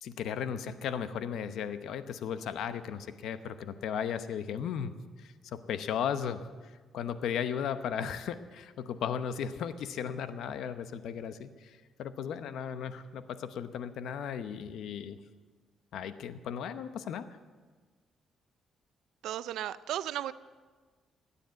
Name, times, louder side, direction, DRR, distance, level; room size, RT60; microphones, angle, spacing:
voice 1, 0.0-4.9 5.2-6.5 6.9-15.2 15.9-17.3, left 8 dB, 75° left, 11 dB, 0.9 m, -36 dB
voice 2, 19.2-20.3, right 12 dB, 80° right, 15 dB, 0.4 m, -35 dB
16.5 x 10.0 x 7.8 m, 1.4 s
cardioid pair, 90°, 0 cm